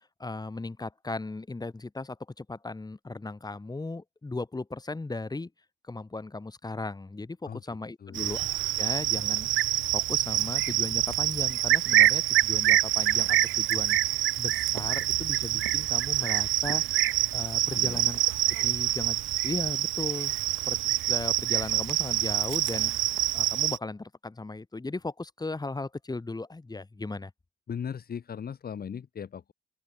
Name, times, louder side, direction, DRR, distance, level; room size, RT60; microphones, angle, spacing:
voice 1, 0.2-5.5 5.9-8.5 8.8-9.5 9.9-14.0 14.4-16.8 17.3-18.2 18.6-19.2 19.4-20.3 20.7-20.8 21.1-22.9 23.3-27.3, left 3 dB, 20° left, 7.4 m, -36 dB
voice 2, 7.4-8.4 17.7-18.1 27.7-29.5, left 7 dB, 50° left, 4.9 m, -39 dB
Cricket, 8.1-23.8, right 15 dB, 80° right, 0.8 m, -26 dB
open air
cardioid pair, 90°, 20 cm